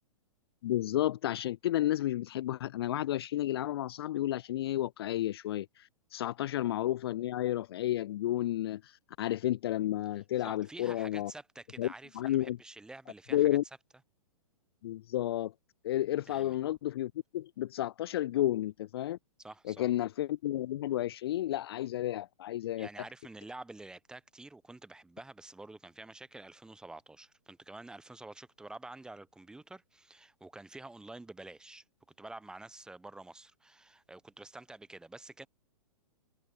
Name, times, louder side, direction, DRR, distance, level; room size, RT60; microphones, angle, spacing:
voice 1, 0.6-11.3 11.8-12.6 13.3-13.6 14.8-15.5 15.8-19.2 19.7-22.9, left 13 dB, 40° left, 0.5 m, -32 dB
voice 2, 10.4-13.5 16.3-16.5 19.4-19.9 22.8-31.8 32.2-35.5, right 2 dB, 5° right, 1.0 m, -49 dB
figure-of-eight pair, 115°, 19 cm